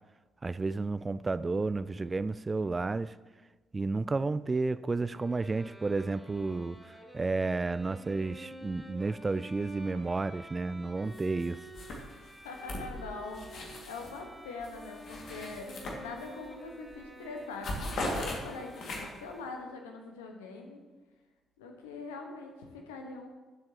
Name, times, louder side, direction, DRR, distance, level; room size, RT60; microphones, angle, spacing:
voice 1, 0.4-3.1 3.7-11.6, right 3 dB, 25° right, 0.3 m, -32 dB
Bowed string instrument, 5.1-19.8, right 1 dB, ahead, 2.1 m, -50 dB
sound 1, 11.1-11.5 11.7-14.2 14.6-16.5 16.9-17.1 17.4-19.3, left 1 dB, 55° left, 2.1 m, -39 dB
voice 2, 12.4-20.8 21.6-23.3, left 3 dB, 75° left, 1.3 m, -43 dB
18.0 x 7.6 x 3.0 m
figure-of-eight pair, 45°, 0 cm